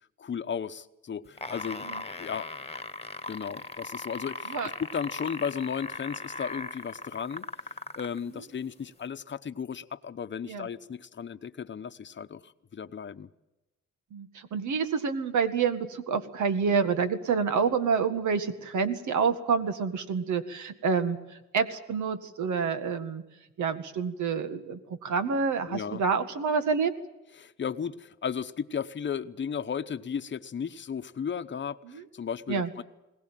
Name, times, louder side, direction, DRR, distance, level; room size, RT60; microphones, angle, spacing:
voice 1, 0.2-2.5 3.3-13.3 25.7-26.0 27.3-32.8, left 7 dB, 40° left, 10 dB, 1.0 m, -35 dB
sound 1, 1.3-8.2 9.0-9.1, left 3 dB, 20° left, 1.4 m, -38 dB
voice 2, 14.1-21.2 21.5-23.2 23.6-26.9 31.9-32.0 32.5-32.7, right 5 dB, 80° right, 10 dB, 2.0 m, -28 dB
21.5 x 18.0 x 9.1 m, 0.99 s
cardioid pair, 100°, 29 cm